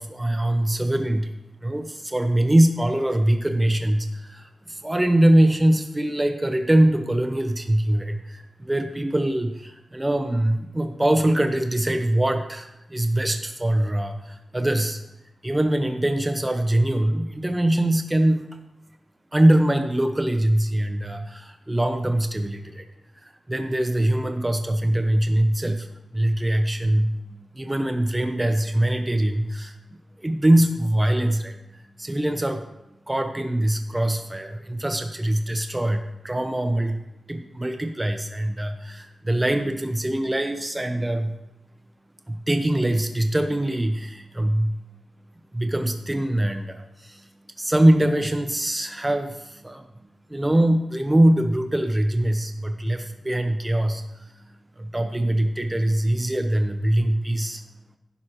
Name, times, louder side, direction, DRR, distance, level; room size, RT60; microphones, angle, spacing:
voice 1, 0.0-1.3 1.6-15.0 15.4-18.5 19.3-22.8 23.2-25.9 26.1-27.1 27.6-29.8 30.2-32.6 33.1-37.0 37.3-41.3 42.3-44.8 45.5-47.3 47.6-49.8 50.3-54.0 54.8-57.6, right 1 dB, 15° right, 6 dB, 0.6 m, -23 dB
11.0 x 11.0 x 3.0 m, 0.90 s
wide cardioid pair, 130°, 0 cm